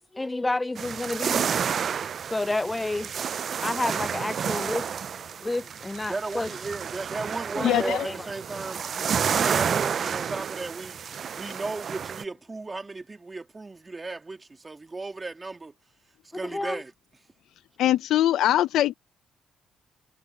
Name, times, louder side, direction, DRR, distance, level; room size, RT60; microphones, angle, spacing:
voice 1, 0.1-1.7 2.3-3.1 3.6-4.9 5.4-6.5 7.6-8.3 16.4-16.8, left 2 dB, 15° left, 0.4 m, -30 dB
sound 1, 0.8-12.2, right 7 dB, 55° right, 0.5 m, -30 dB
voice 2, 6.0-11.0 11.3-15.7 16.2-16.9, right 3 dB, 25° right, 2.7 m, -35 dB
voice 3, 7.6-8.1 17.8-18.9, left 13 dB, 80° left, 0.7 m, -22 dB
cardioid pair, 90°, 0 cm